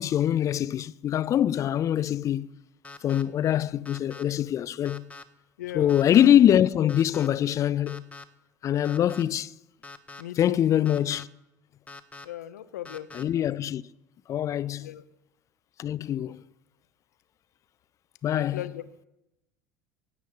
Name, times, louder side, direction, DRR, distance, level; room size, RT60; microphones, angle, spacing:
voice 1, 0.0-2.5 3.0-5.1 5.7-8.0 8.6-9.5 10.4-11.3 13.1-13.8 14.3-14.9 15.8-16.4 18.2-18.6, left 10 dB, 40° left, 0.5 m, -23 dB
sound 1, 2.8-3.2 3.9-4.2 4.9-5.2 5.9-6.3 6.9-7.3 7.9-8.2 8.8-9.2 9.8-10.2 10.9-11.2 11.9-12.3 12.9-13.2, left 3 dB, 15° left, 1.0 m, -44 dB
voice 2, 5.6-5.9 10.2-10.6 12.2-13.1 14.8-15.0 18.3-18.9, left 13 dB, 70° left, 0.9 m, -37 dB
16.5 x 7.3 x 9.8 m
figure-of-eight pair, 65°, 9 cm